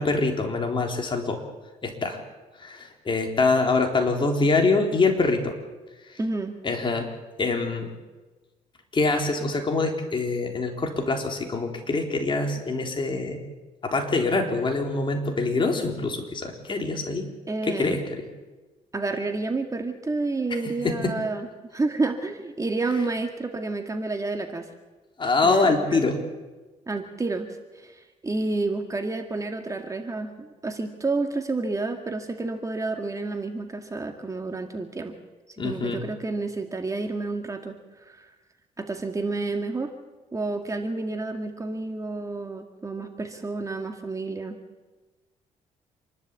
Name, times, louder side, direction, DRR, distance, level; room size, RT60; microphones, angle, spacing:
voice 1, 0.0-1.4 1.8-2.2 2.6-5.6 6.1-6.2 6.6-7.9 8.9-13.4 13.8-17.3 17.7-18.2 20.8-21.1 25.2-26.2 35.6-36.0, left 3 dB, 35° left, 3 dB, 3.7 m, -24 dB
voice 2, 6.2-6.6 17.5-18.0 18.9-24.7 25.4-26.0 26.9-35.2 35.6-37.8 38.1-38.3 38.8-39.9 40.3-44.6, right 3 dB, 25° right, 5 dB, 2.1 m, -30 dB
27.0 x 12.0 x 8.4 m, 1.2 s
cardioid pair, 90°, 14 cm